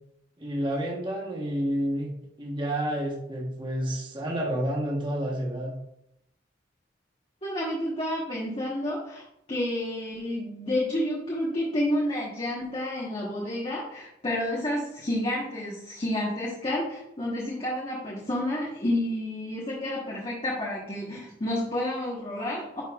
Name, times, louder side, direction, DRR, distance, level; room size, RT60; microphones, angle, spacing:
voice 1, 0.4-2.1 2.4-5.7, right 1 dB, 25° right, -1 dB, 1.1 m, -29 dB
voice 2, 7.4-9.2 9.5-22.8, left 1 dB, 30° left, -4 dB, 1.2 m, -30 dB
10.0 x 5.2 x 2.4 m, 0.81 s
head